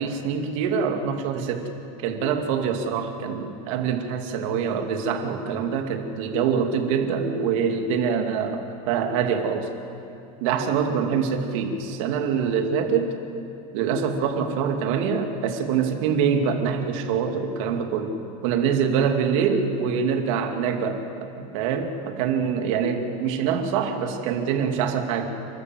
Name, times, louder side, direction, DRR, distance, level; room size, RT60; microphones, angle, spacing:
voice 1, 0.0-1.7 2.0-9.7 10.4-13.2 13.7-18.2 18.4-25.3, right 6 dB, 60° right, 4 dB, 2.5 m, -25 dB
29.5 x 13.5 x 7.8 m, 2.7 s
supercardioid pair, 160°, 18 cm